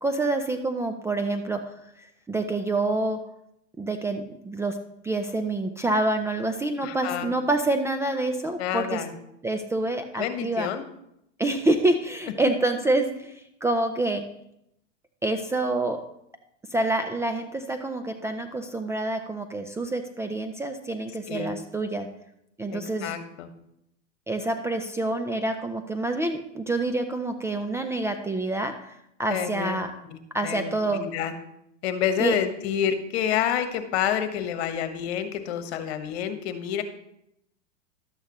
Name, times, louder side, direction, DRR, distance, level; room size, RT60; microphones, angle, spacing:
voice 1, 0.0-1.7 2.3-3.3 3.8-4.8 5.0-9.0 9.4-10.7 11.4-14.3 15.2-16.0 16.7-22.1 22.6-23.1 24.3-28.9 29.2-29.9 30.3-31.0 32.2-32.4, right 2 dB, 10° right, 6 dB, 0.4 m, -27 dB
voice 2, 6.8-7.3 8.6-9.1 10.2-10.8 21.3-21.5 22.7-23.5 29.3-29.8 30.1-31.3 31.8-36.8, left 9 dB, 60° left, 8 dB, 1.3 m, -28 dB
12.5 x 8.1 x 3.0 m, 0.78 s
hypercardioid pair, 105°, 36 cm